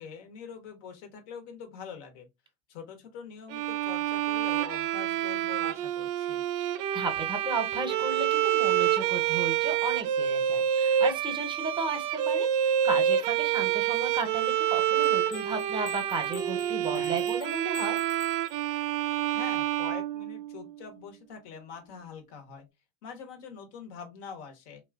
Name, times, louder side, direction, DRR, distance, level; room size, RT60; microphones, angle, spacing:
voice 1, 0.0-2.3 2.7-6.5 16.8-17.2 19.3-22.7 23.0-24.8, left 6 dB, 55° left, 1.1 m, -44 dB
Bowed string instrument, 3.5-20.7, right 10 dB, 45° right, 0.4 m, -28 dB
voice 2, 6.6-18.0, right 3 dB, 10° right, 0.9 m, -34 dB
sound 1, 15.0-19.0, left 9 dB, 35° left, 0.5 m, -48 dB
2.8 x 2.3 x 2.3 m
hypercardioid pair, 90°, 39 cm